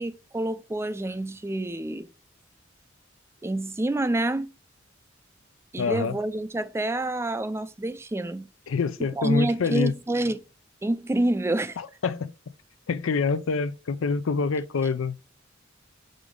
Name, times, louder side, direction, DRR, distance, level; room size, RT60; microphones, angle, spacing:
voice 1, 0.0-2.1 3.4-4.5 5.7-8.5 9.2-10.4 10.8-11.8, right 1 dB, 15° right, 0.4 m, -27 dB
voice 2, 5.8-6.2 8.7-9.9 11.8-12.3 12.9-15.2, left 4 dB, 75° left, 0.5 m, -26 dB
5.1 x 4.9 x 3.7 m
head